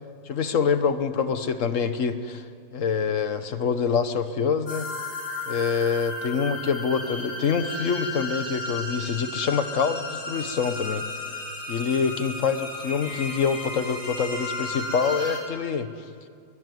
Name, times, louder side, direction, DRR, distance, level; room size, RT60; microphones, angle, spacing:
voice 1, 0.3-2.4 2.7-4.9 5.5-11.0 11.7-15.9, left 6 dB, 50° left, 10 dB, 1.4 m, -25 dB
sound 1, 4.7-15.4, left 2 dB, 85° left, 5.2 m, -34 dB
22.5 x 19.0 x 9.4 m, 2.2 s
omnidirectional pair, 1.9 m